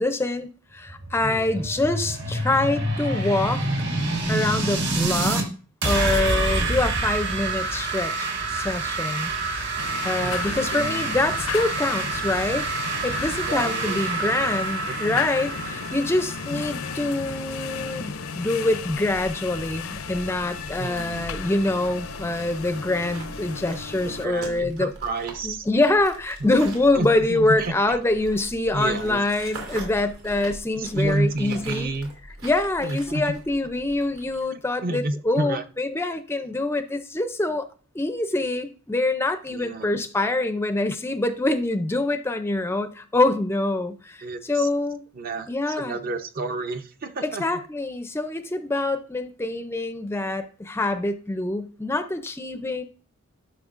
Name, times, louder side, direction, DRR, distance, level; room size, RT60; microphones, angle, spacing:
voice 1, 0.0-3.6 4.3-5.4 5.8-9.3 10.0-12.7 13.0-24.9 25.4-31.9 32.4-37.6 37.9-45.0 45.5-46.0 47.2-52.8, left 2 dB, 10° left, 0.4 m, -25 dB
sound 1, 0.8-5.4 5.8-17.4, right 2 dB, 60° right, 1.7 m, -27 dB
voice 2, 1.2-1.7 10.2-10.7 13.4-14.0 14.3-14.5 14.8-15.3 20.8-21.4 24.0-25.7 26.9-28.0 28.7-29.2 30.8-32.1 32.8-33.4 34.5-35.6 39.5-40.0 44.2-44.7 45.1-47.4, right 2 dB, 45° right, 0.6 m, -30 dB
sound 2, 9.8-24.3, left 6 dB, 75° left, 0.6 m, -34 dB
sound 3, 18.9-34.4, right 2 dB, 75° right, 3.0 m, -42 dB
11.5 x 5.8 x 2.5 m
head